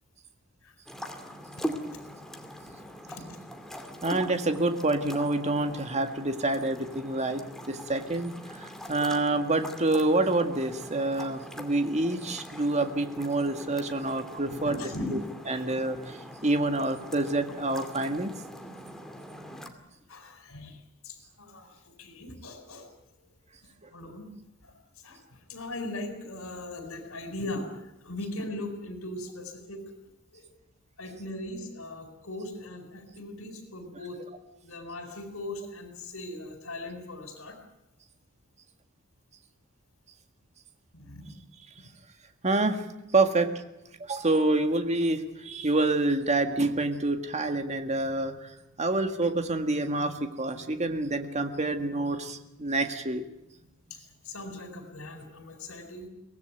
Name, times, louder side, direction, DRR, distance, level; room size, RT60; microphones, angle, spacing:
sound 1, 0.9-19.7, equal, ahead, 2.3 m, -42 dB
voice 1, 2.8-3.4 14.5-15.2 15.5-15.6 20.1-22.9 23.6-24.3 24.6-27.7 28.0-29.8 30.3-30.5 31.0-34.2 34.6-37.6 40.9-41.3 53.9-56.1, left 1 dB, 80° left, 7 dB, 4.6 m, -39 dB
voice 2, 4.0-14.8 15.1-15.2 15.5-18.3 23.8-23.9 42.4-42.9 43.1-43.5 44.0-53.2, right 2 dB, 35° right, 7 dB, 1.8 m, -27 dB
23.5 x 18.5 x 9.2 m, 0.90 s
head